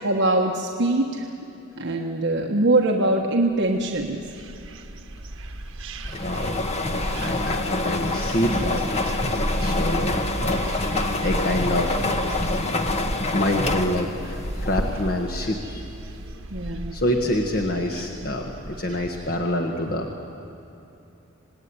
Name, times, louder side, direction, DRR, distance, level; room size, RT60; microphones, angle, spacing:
voice 1, 0.0-1.3 1.8-4.2 16.5-16.9, right 2 dB, 60° right, 0 dB, 1.4 m, -22 dB
sound 1, 3.7-19.4, right 1 dB, 80° right, 1.5 m, -35 dB
sound 2, 6.0-15.3, left 2 dB, 35° left, 1.4 m, -26 dB
voice 2, 6.2-6.6 7.1-8.8 9.3-10.1 10.4-12.1 12.4-13.0 13.3-15.8 16.9-20.1, left 1 dB, 50° left, 2 dB, 1.5 m, -27 dB
26.5 x 19.0 x 9.8 m, 2.9 s
head